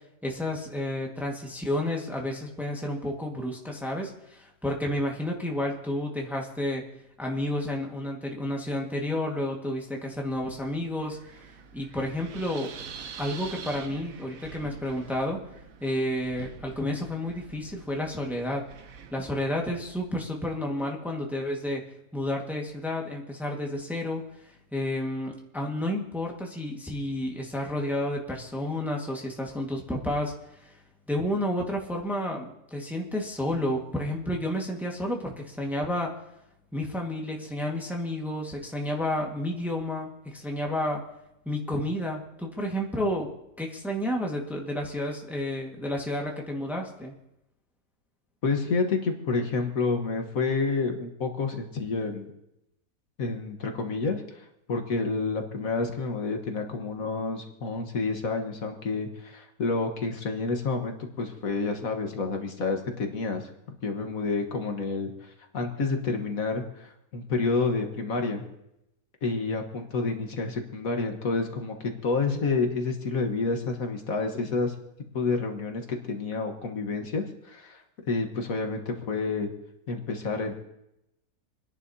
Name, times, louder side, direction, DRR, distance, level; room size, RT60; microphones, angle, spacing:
voice 1, 0.2-6.8 7.2-11.2 11.7-12.7 13.2-15.4 15.8-18.6 19.1-21.8 22.1-24.2 24.7-30.7 31.1-36.1 36.7-41.0 41.4-43.3 43.6-47.1, left 1 dB, ahead, 0 dB, 1.5 m, -31 dB
Wind, 10.1-20.2, right 6 dB, 65° right, 1.2 m, -46 dB
voice 2, 48.4-52.3 53.2-63.5 63.8-68.4 69.2-74.7 75.1-79.5 79.9-80.5, left 3 dB, 65° left, 4 dB, 1.7 m, -29 dB
27.5 x 10.5 x 2.8 m, 0.85 s
omnidirectional pair, 1.6 m